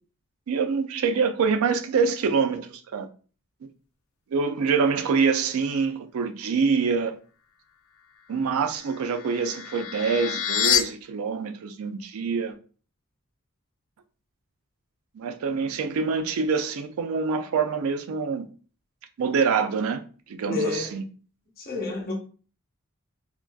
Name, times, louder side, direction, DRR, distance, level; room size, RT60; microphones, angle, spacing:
voice 1, 0.5-3.1 3.6-3.7 4.3-7.2 8.3-12.6 15.1-18.5 19.2-20.0 20.3-21.1, right 5 dB, 85° right, 0.4 m, -25 dB
sound 1, 8.6-10.8, left 9 dB, 80° left, 0.4 m, -27 dB
voice 2, 20.5-20.9 21.6-22.1, left 4 dB, 45° left, 0.8 m, -29 dB
3.7 x 2.3 x 2.2 m
head